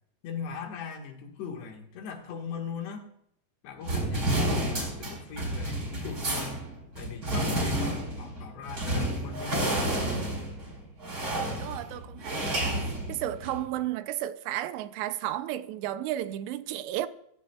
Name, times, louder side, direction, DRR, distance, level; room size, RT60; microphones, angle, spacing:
voice 1, 0.2-3.1 3.6-6.7 7.0-10.2, left 6 dB, 75° left, 3.7 m, -40 dB
sound 1, 3.8-13.6, right 1 dB, 20° right, 4.3 m, -30 dB
voice 2, 11.6-17.1, right 13 dB, 85° right, 2.8 m, -33 dB
22.0 x 15.5 x 2.3 m
omnidirectional pair, 5.0 m